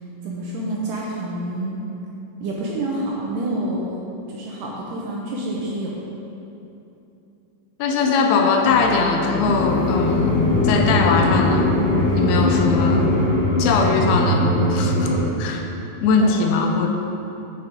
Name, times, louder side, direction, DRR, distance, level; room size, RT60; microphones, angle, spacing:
voice 1, 0.2-1.8 2.4-3.9 4.3-5.9 12.1-12.2 13.6-13.8 16.2-16.4, right 1 dB, 75° right, -4 dB, 2.0 m, -28 dB
voice 2, 7.8-11.7 12.1-13.1 13.6-15.1 15.4-15.6 16.0-17.0, left 4 dB, 80° left, 3 dB, 2.4 m, -21 dB
sound 1, 7.9-13.3, left 4 dB, 65° left, 2.5 m, -27 dB
sound 2, 9.3-15.2, left 1 dB, 40° left, 1.5 m, -20 dB
9.4 x 5.2 x 4.8 m, 2.9 s
omnidirectional pair, 4.5 m